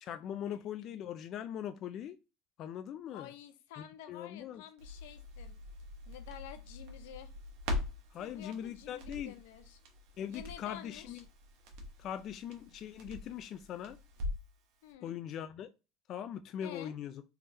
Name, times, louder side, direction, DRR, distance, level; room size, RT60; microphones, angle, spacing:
voice 1, 0.0-2.2 2.6-3.3 3.8-4.6 8.1-9.3 10.2-11.2 12.0-14.0 15.0-15.7 16.1-17.1, left 9 dB, 45° left, 0.3 m, -41 dB
voice 2, 3.1-5.6 6.1-7.3 8.2-9.8 10.3-11.2 14.8-15.1 16.6-16.9, left 11 dB, 90° left, 0.6 m, -50 dB
Crackle, 4.8-14.6 14.9-15.0, left 1 dB, 65° right, 1.1 m, -43 dB
3.4 x 3.3 x 2.7 m
supercardioid pair, 130°, 0 cm